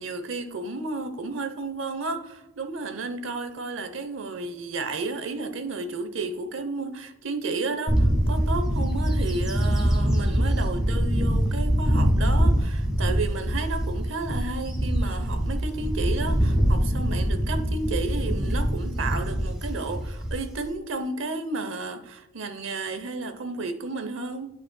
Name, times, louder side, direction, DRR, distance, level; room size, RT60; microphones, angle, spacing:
voice 1, 0.0-24.5, right 3 dB, 60° right, 0.7 m, -32 dB
Bird / Wind, 7.9-20.7, equal, 5° right, 1.4 m, -24 dB
11.5 x 5.2 x 2.2 m
head